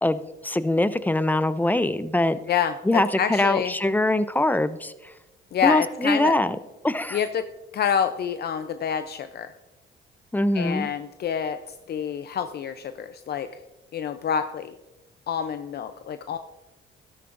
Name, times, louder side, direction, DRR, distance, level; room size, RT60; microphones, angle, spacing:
voice 1, 0.0-2.4 2.8-5.1 5.6-6.6 6.8-7.2 10.3-10.9, left 1 dB, 10° left, 14 dB, 0.5 m, -23 dB
voice 2, 2.5-3.7 5.5-6.4 7.1-7.4 7.7-9.5 10.5-11.6 11.9-13.5 13.9-14.7 15.3-16.4, left 8 dB, 55° left, 10 dB, 0.5 m, -27 dB
13.0 x 12.0 x 2.5 m, 1.0 s
cardioid pair, 90°, 20 cm